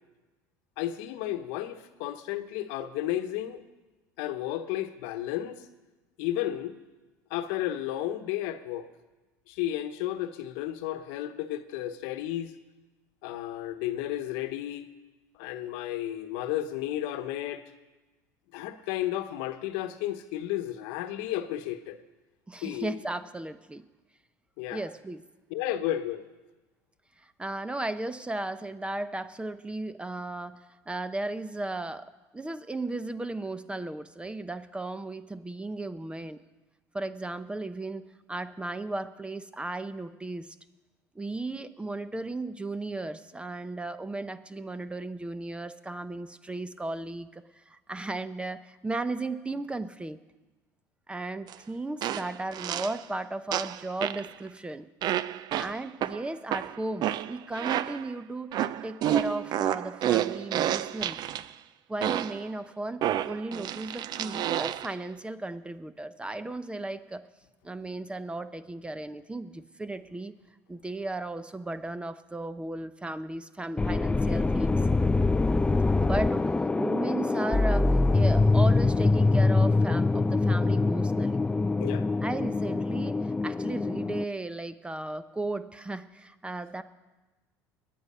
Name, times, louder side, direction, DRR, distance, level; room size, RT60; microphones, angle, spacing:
voice 1, 0.8-3.6 4.2-5.6 6.2-6.8 7.3-8.9 9.5-12.5 13.2-14.9 15.4-17.6 18.5-22.0 22.6-23.0 24.6-24.9 25.5-26.2 81.8-82.1, left 13 dB, 70° left, 10 dB, 1.0 m, -33 dB
voice 2, 22.5-23.8 24.7-25.2 27.2-30.6 30.9-36.4 36.9-40.6 41.2-50.2 51.1-54.9 55.6-58.6 58.8-61.2 61.9-67.2 67.6-70.3 70.7-74.8 76.0-81.4 82.2-86.8, right 2 dB, 10° right, 13 dB, 0.7 m, -35 dB
sound 1, 51.5-51.6 52.0-53.0 53.5-54.3 55.0-58.1 58.5-61.4 62.0-62.5 63.0-64.9, right 12 dB, 50° right, 0.5 m, -30 dB
sound 2, 73.8-84.2, left 3 dB, 10° left, 0.4 m, -24 dB
21.5 x 9.3 x 5.5 m, 1.2 s
hypercardioid pair, 85°, 9 cm